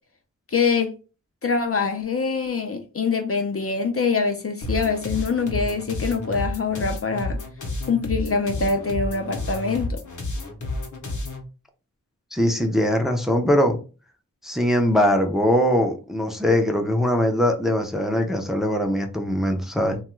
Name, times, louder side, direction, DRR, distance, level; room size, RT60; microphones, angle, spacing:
voice 1, 0.5-0.9 1.4-7.4 7.9-10.0, left 5 dB, 45° left, 0.4 m, -24 dB
sound 1, 4.6-11.4, left 2 dB, 65° left, 0.8 m, -30 dB
voice 2, 12.3-13.8 14.4-20.0, equal, ahead, 0.5 m, -21 dB
2.9 x 2.3 x 3.0 m
wide cardioid pair, 65°, 32 cm